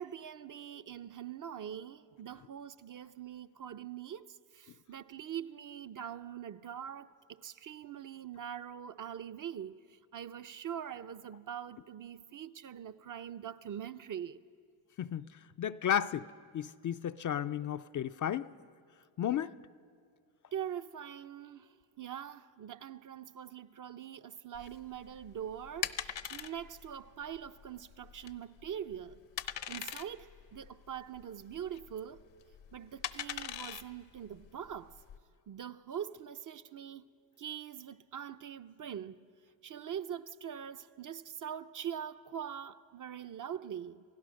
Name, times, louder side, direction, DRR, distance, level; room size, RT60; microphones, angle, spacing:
voice 1, 0.0-14.4 20.5-29.2 29.7-32.2 32.7-35.0 35.5-37.0 37.4-39.3 39.6-44.0, right 9 dB, 45° right, 0.6 m, -43 dB
voice 2, 15.0-16.3 16.5-18.5 19.2-19.5, left 10 dB, 45° left, 0.4 m, -33 dB
sound 1, 24.6-35.2, left 10 dB, 70° left, 0.9 m, -43 dB
29.0 x 16.0 x 6.4 m
cardioid pair, 95°, 46 cm